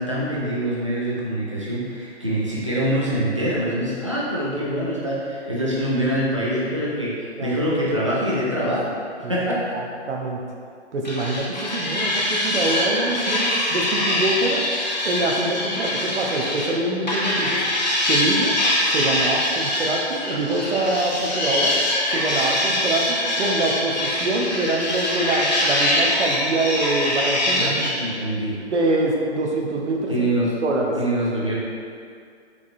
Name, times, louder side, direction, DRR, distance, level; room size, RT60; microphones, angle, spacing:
voice 1, 0.0-8.9 9.2-9.8 27.6-28.6 30.1-30.5 31.0-31.6, right 1 dB, 30° right, -7 dB, 0.4 m, -24 dB
voice 2, 9.7-10.4 10.9-14.6 15.0-17.6 18.1-18.5 18.9-21.7 22.1-27.7 28.7-30.1 30.6-30.9, right 2 dB, 85° right, -1 dB, 0.7 m, -25 dB
sound 1, 11.0-16.8 17.1-27.9, left 1 dB, 40° left, 0.4 m, -23 dB
4.7 x 2.6 x 2.5 m, 2.3 s
hypercardioid pair, 180°, 34 cm